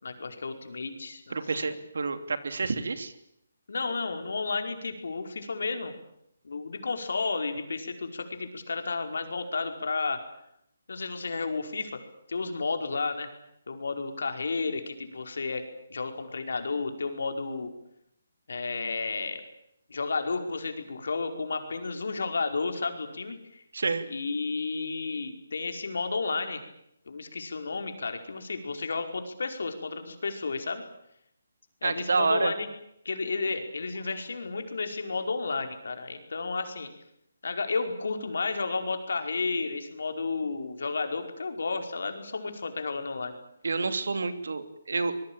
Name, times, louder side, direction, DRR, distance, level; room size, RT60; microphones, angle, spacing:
voice 1, 0.0-1.7 3.7-5.9 6.4-10.2 10.9-12.0 12.3-13.3 13.7-15.6 15.9-17.7 18.5-19.4 19.9-23.6 24.1-26.6 27.1-30.8 31.8-32.7 33.1-36.9 37.4-43.4, left 4 dB, 70° left, 6 dB, 5.1 m, -32 dB
voice 2, 1.3-3.1 23.7-24.0 31.8-32.5 43.6-45.1, right 4 dB, 75° right, 10 dB, 3.0 m, -28 dB
25.0 x 21.5 x 9.0 m, 0.78 s
hypercardioid pair, 165°, 0 cm